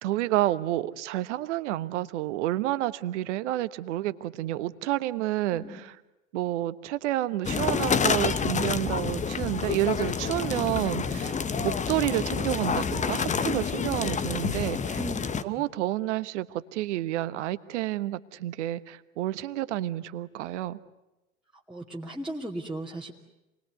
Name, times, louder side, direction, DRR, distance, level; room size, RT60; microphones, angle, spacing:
voice 1, 0.0-5.6 6.3-11.3 11.6-15.0 15.4-20.8, right 15 dB, 60° right, 14 dB, 1.2 m, -29 dB
sound 1, 7.4-15.4, left 6 dB, 20° left, 1.0 m, -28 dB
voice 2, 14.9-15.3 15.5-15.6 21.5-23.1, right 1 dB, ahead, -5 dB, 2.4 m, -37 dB
28.0 x 21.0 x 9.5 m, 0.98 s
figure-of-eight pair, 80°, 39 cm